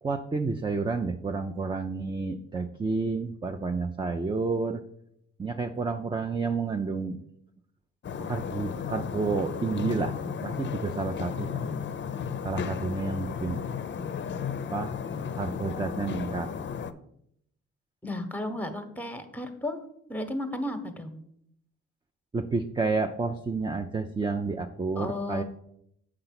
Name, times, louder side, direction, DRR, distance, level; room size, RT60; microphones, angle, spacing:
voice 1, 0.0-4.8 5.4-7.2 8.3-10.2 10.4-11.7 12.4-13.6 14.7-14.9 15.4-16.5 22.3-25.4, right 4 dB, 15° right, 6 dB, 0.5 m, -30 dB
sound 1, 8.0-16.9, left 7 dB, 40° left, 0.6 m, -34 dB
voice 2, 18.0-19.8 20.1-21.2 24.9-25.4, left 1 dB, 5° left, 7 dB, 1.1 m, -34 dB
6.7 x 4.8 x 5.9 m, 0.73 s
cardioid pair, 90°, 30 cm